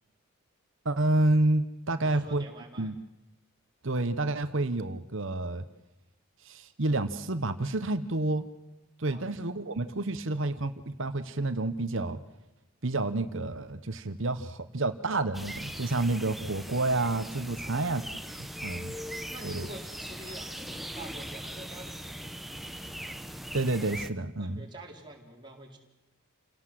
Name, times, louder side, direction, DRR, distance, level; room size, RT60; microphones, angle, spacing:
voice 1, 0.8-2.4 2.8-3.0 3.8-5.6 6.4-8.5 9.0-12.2 12.8-18.0 18.6-18.9 19.4-19.7 23.5-24.7, right 2 dB, 60° right, 11 dB, 1.1 m, -29 dB
voice 2, 2.0-2.9 9.1-9.4 17.6-17.9 18.6-18.9 19.3-22.5 24.4-25.8, right 1 dB, 20° right, -1 dB, 4.3 m, -47 dB
sound 1, 15.3-24.1, equal, ahead, 0.9 m, -40 dB
29.0 x 18.0 x 7.7 m, 0.96 s
head